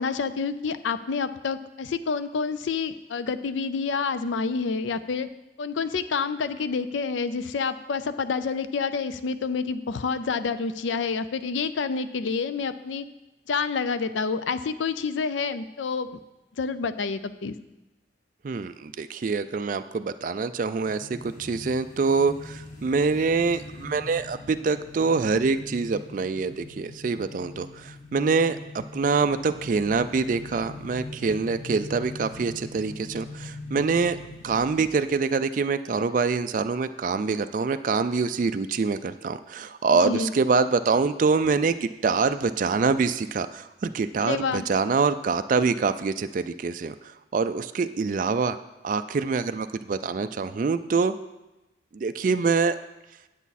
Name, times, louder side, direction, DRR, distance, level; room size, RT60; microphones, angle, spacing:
voice 1, 0.0-5.3 5.6-13.0 13.5-16.2 16.6-17.6 40.0-40.3 44.2-44.7, left 5 dB, 80° left, 13 dB, 0.4 m, -28 dB
voice 2, 18.4-34.2 34.4-46.9 47.3-48.6 48.8-51.1 51.9-52.8, right 4 dB, 45° right, 10 dB, 0.3 m, -25 dB
sound 1, 20.8-35.1, left 2 dB, 45° left, 1.8 m, -42 dB
9.3 x 8.2 x 4.1 m, 1.0 s
head